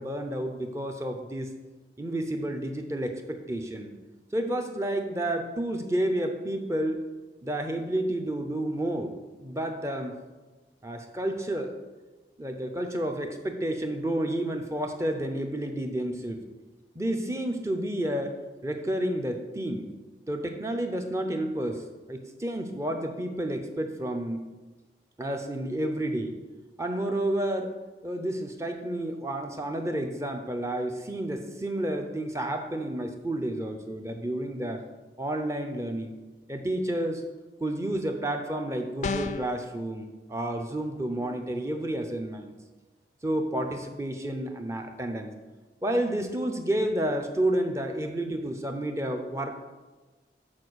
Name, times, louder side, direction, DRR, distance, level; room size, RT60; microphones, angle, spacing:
voice 1, 0.0-1.5 2.0-3.9 4.3-7.0 7.4-9.1 9.4-10.2 10.8-11.8 12.4-16.4 16.9-19.9 20.3-24.5 25.2-26.3 26.8-27.8 28.0-34.8 35.2-36.1 36.5-37.2 37.6-42.5 43.2-45.3 45.8-49.6, right 1 dB, 15° right, 5 dB, 0.6 m, -30 dB
sound 1, 39.0-39.6, left 4 dB, 40° left, 0.4 m, -30 dB
7.4 x 4.6 x 6.3 m, 1.2 s
head